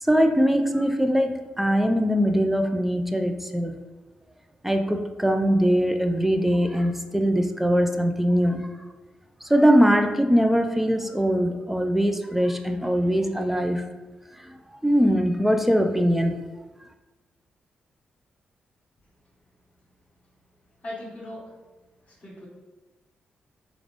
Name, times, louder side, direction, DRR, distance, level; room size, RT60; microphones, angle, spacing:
voice 1, 0.0-3.8 4.6-8.7 9.4-13.9 14.4-14.6 14.8-16.4, equal, 5° right, 6 dB, 0.4 m, -22 dB
voice 2, 20.8-21.6 22.0-22.5, left 1 dB, 45° left, -9 dB, 1.3 m, -39 dB
3.5 x 2.4 x 3.3 m, 1.2 s
hypercardioid pair, 45°, 4 cm